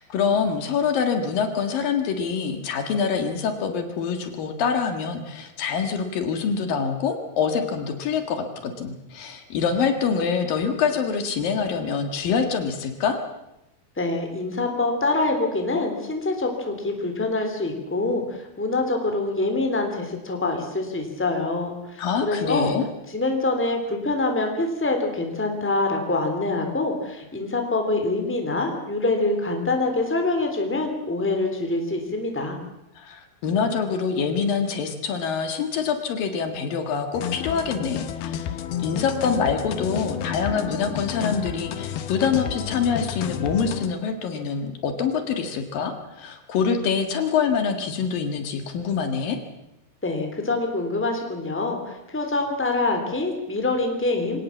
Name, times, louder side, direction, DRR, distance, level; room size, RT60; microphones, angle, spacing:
voice 1, 0.0-13.2 22.0-22.9 32.9-49.4, left 6 dB, 70° left, 6 dB, 3.4 m, -25 dB
voice 2, 14.0-22.7 23.1-32.6 50.0-54.4, left 2 dB, 5° left, 3 dB, 2.8 m, -25 dB
sound 1, 37.1-43.9, left 10 dB, 90° left, 3.1 m, -31 dB
24.0 x 18.0 x 7.3 m, 0.88 s
omnidirectional pair, 4.3 m